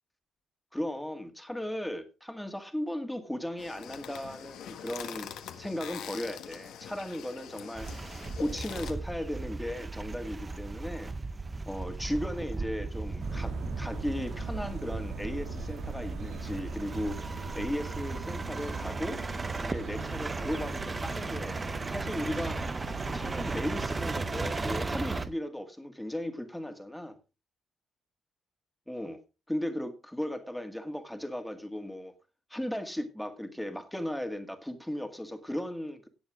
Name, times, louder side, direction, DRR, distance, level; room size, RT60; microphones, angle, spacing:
voice 1, 0.7-5.3 5.6-7.9 8.4-11.1 11.7-17.2 17.6-19.2 19.6-21.6 21.9-22.6 23.1-27.2 28.9-29.2 29.5-32.1 32.5-36.1, left 1 dB, 5° left, 2.1 m, -36 dB
sound 1, 3.6-8.9, left 9 dB, 85° left, 1.5 m, -43 dB
sound 2, 7.7-25.3, right 3 dB, 25° right, 0.6 m, -36 dB
sound 3, 13.2-25.3, right 4 dB, 85° right, 2.5 m, -41 dB
17.5 x 7.3 x 3.7 m
cardioid pair, 110°, 0 cm